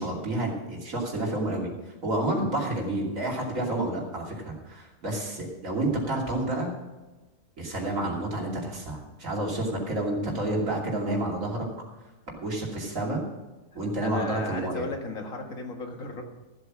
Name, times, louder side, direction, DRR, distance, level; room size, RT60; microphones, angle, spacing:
voice 1, 0.0-1.7 2.0-6.7 7.6-11.6 12.3-13.2 13.7-14.9, right 1 dB, 75° right, -2 dB, 3.2 m, -29 dB
voice 2, 14.0-16.2, left 3 dB, 75° left, 3 dB, 2.1 m, -35 dB
14.0 x 8.1 x 6.1 m, 1.1 s
omnidirectional pair, 1.4 m